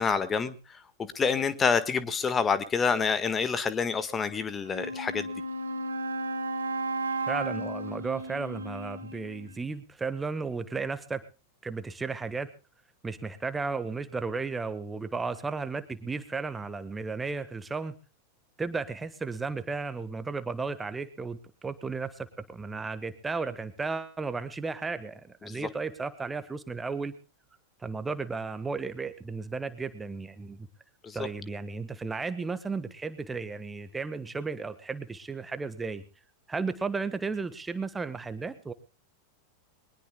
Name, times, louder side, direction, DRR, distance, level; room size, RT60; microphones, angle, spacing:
voice 1, 0.0-5.3 25.5-25.7 31.0-31.3, left 5 dB, 20° left, 14 dB, 1.6 m, -28 dB
Wind instrument woodwind instrument, 4.6-9.6, right 2 dB, 70° right, 2.9 m, -34 dB
voice 2, 7.3-11.2 11.6-12.5 13.0-17.9 18.6-27.1 27.8-30.7 31.1-36.0 36.5-38.7, right 4 dB, 10° right, 12 dB, 1.4 m, -34 dB
22.5 x 20.5 x 2.3 m, 0.34 s
figure-of-eight pair, 90°, 0 cm